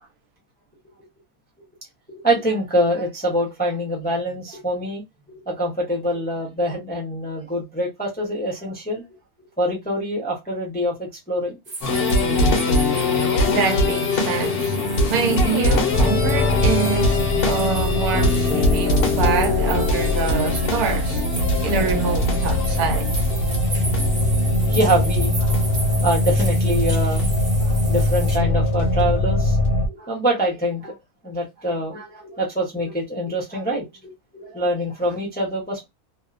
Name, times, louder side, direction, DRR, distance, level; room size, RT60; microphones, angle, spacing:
voice 1, 2.1-5.0 5.3-9.0 9.6-11.6 24.6-25.5 26.0-27.3 27.6-29.6 29.9-30.9 31.2-35.9, equal, 10° left, 0.4 m, -25 dB
sound 1, 11.6-28.4, right 2 dB, 50° right, 1.1 m, -35 dB
sound 2, 11.8-26.5 26.8-26.9 27.2-27.3 28.0-28.1 28.4-29.0 29.6-29.7, left 2 dB, 55° left, 0.7 m, -23 dB
voice 2, 13.4-14.8 15.1-21.2 21.6-23.1, right 5 dB, 85° right, 1.2 m, -25 dB
sound 3, 15.9-29.9, left 1 dB, 75° left, 1.1 m, -22 dB
2.8 x 2.1 x 2.4 m
omnidirectional pair, 1.5 m